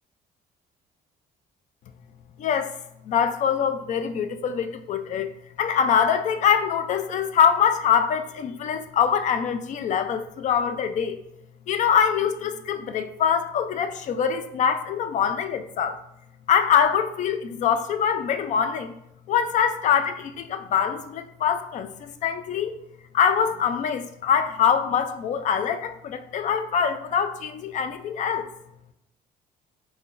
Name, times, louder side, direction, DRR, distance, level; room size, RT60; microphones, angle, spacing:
voice 1, 2.4-2.7 3.0-5.3 5.6-11.2 11.7-16.0 16.5-18.9 19.3-22.7 23.1-28.5, left 7 dB, 45° left, 9 dB, 0.4 m, -24 dB
3.7 x 2.1 x 2.5 m, 0.79 s
cardioid pair, 110°, 17 cm